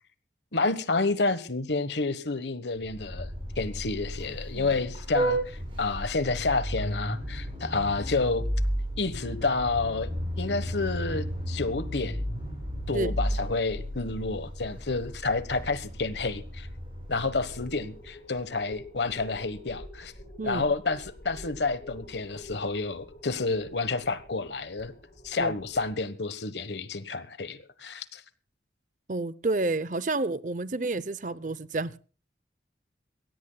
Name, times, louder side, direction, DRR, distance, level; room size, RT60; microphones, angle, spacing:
voice 1, 0.5-3.3 3.6-8.4 9.0-10.1 10.4-12.3 12.9-16.7 17.1-20.1 20.4-24.9 25.2-28.2, left 3 dB, 75° left, 1.3 m, -29 dB
Vehicle horn car horn honking, 2.8-18.2, equal, 30° right, 8.0 m, -34 dB
sound 1, 17.3-26.0, left 1 dB, 40° left, 6.4 m, -48 dB
voice 2, 29.1-32.0, right 2 dB, 45° right, 0.6 m, -30 dB
23.0 x 17.0 x 2.3 m
head